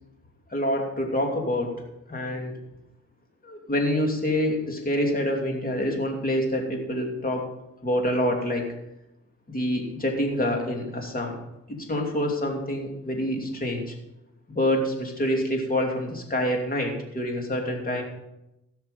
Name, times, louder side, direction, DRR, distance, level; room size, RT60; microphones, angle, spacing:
voice 1, 0.5-1.7 2.1-2.5 3.4-7.5 7.8-8.7 9.5-11.4 11.7-13.9 14.5-18.0, left 1 dB, 30° left, 2 dB, 2.8 m, -26 dB
16.0 x 6.6 x 5.2 m, 0.89 s
cardioid pair, 90°, 30 cm